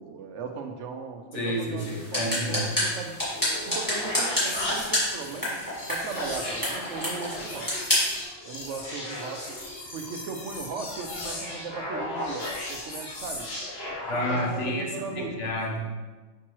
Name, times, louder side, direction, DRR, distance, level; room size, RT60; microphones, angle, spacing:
voice 1, 0.0-3.1 3.7-5.6 5.9-7.7 8.5-9.6 9.9-13.5 14.2-15.3, right 5 dB, 75° right, 4 dB, 1.0 m, -38 dB
voice 2, 1.3-2.7 14.0-15.8, equal, 75° left, -1 dB, 1.4 m, -30 dB
sound 1, 1.8-8.2, equal, 15° left, 1.9 m, -29 dB
sound 2, 3.2-14.6, left 1 dB, 55° left, 1.3 m, -36 dB
6.0 x 5.3 x 3.0 m, 1.3 s
omnidirectional pair, 1.2 m